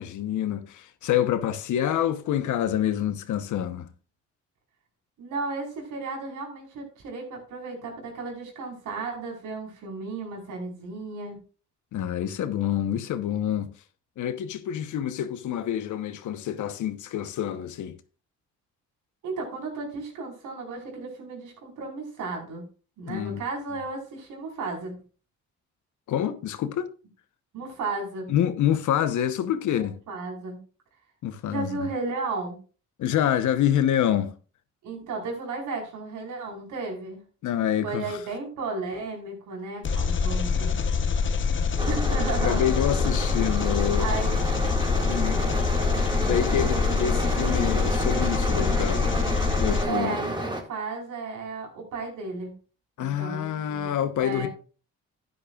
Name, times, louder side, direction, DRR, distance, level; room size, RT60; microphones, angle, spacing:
voice 1, 0.0-3.9 11.9-13.7 14.2-18.0 23.1-23.4 26.1-26.9 28.3-30.0 31.2-31.9 33.0-34.3 37.4-38.2 42.1-44.1 45.1-45.4 46.2-49.1 49.6-50.2 53.0-54.5, left 10 dB, 75° left, 1.1 m, -27 dB
voice 2, 5.2-11.4 19.2-22.6 23.0-25.0 27.5-28.3 29.7-30.6 31.5-32.6 34.8-37.2 37.8-40.9 41.9-43.0 44.0-44.4 49.9-52.5 53.0-53.9 54.2-54.5, right 3 dB, 85° right, 4.6 m, -34 dB
Engine, 39.8-49.8, left 5 dB, 40° left, 1.0 m, -25 dB
sound 1, 41.8-50.6, right 1 dB, 15° right, 2.0 m, -30 dB
12.0 x 9.8 x 2.4 m
cardioid pair, 90°, 30 cm